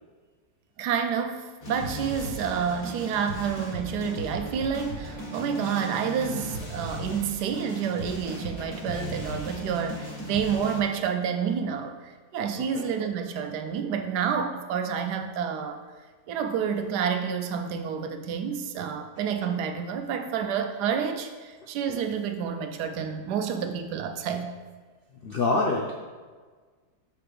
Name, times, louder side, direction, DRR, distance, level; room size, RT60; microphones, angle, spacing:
voice 1, 0.8-15.8 16.3-24.5, right 7 dB, 80° right, 6 dB, 1.1 m, -29 dB
sound 1, 1.6-10.8, equal, 30° left, 1.4 m, -36 dB
voice 2, 12.5-12.9 25.2-26.0, left 3 dB, 75° left, -1 dB, 0.5 m, -26 dB
5.9 x 5.6 x 3.3 m, 1.5 s
omnidirectional pair, 1.8 m